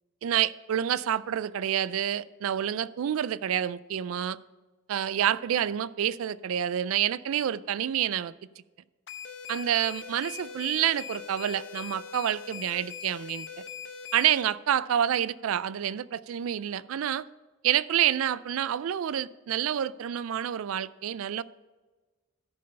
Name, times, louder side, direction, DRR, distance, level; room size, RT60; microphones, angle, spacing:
voice 1, 0.2-4.4 4.9-8.3 9.5-13.5 14.1-17.3 17.6-21.4, right 10 dB, 85° right, 19 dB, 0.3 m, -28 dB
sound 1, 9.1-14.4, left 7 dB, 60° left, 0.8 m, -41 dB
13.5 x 5.4 x 5.4 m, 1.2 s
head